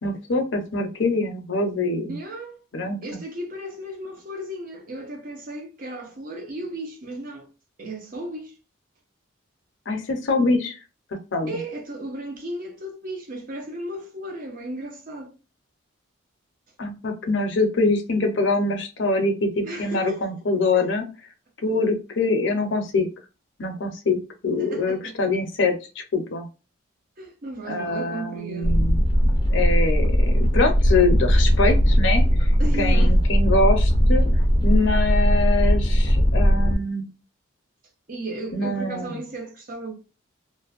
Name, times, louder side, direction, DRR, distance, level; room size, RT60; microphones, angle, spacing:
voice 1, 0.0-2.2 2.7-3.0 9.9-10.7 11.3-11.5 16.8-21.1 21.6-23.1 23.6-26.5 27.7-29.0 29.5-32.3 32.8-34.2 34.6-37.1 38.5-39.2, left 3 dB, 65° left, 0.6 m, -24 dB
voice 2, 2.1-2.6 3.0-7.5 7.8-8.6 11.5-15.3 19.6-20.3 20.7-20.9 24.6-25.2 27.2-28.9 32.4-33.2 38.1-39.9, right 1 dB, 45° right, 0.6 m, -35 dB
sound 1, 28.6-36.7, equal, 20° left, 0.4 m, -19 dB
2.5 x 2.1 x 2.4 m
head